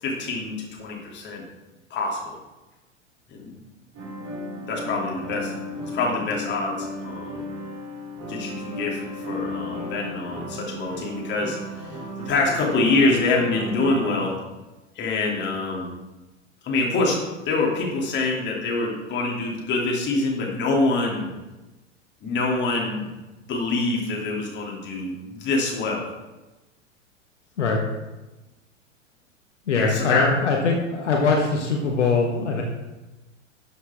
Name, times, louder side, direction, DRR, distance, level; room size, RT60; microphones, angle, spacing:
voice 1, 0.0-1.4 1.9-2.4 3.3-3.6 4.7-5.5 5.9-7.5 8.3-14.4 15.0-15.9 16.6-21.3 22.2-23.1 23.5-26.1 29.7-30.3, left 3 dB, 30° left, -1 dB, 2.7 m, -25 dB
sound 1, 3.9-14.2, equal, 35° right, 3.5 m, -34 dB
voice 2, 29.7-32.6, left 4 dB, 70° left, 0 dB, 1.5 m, -22 dB
12.0 x 7.3 x 3.6 m, 1.1 s
figure-of-eight pair, 90°, 37 cm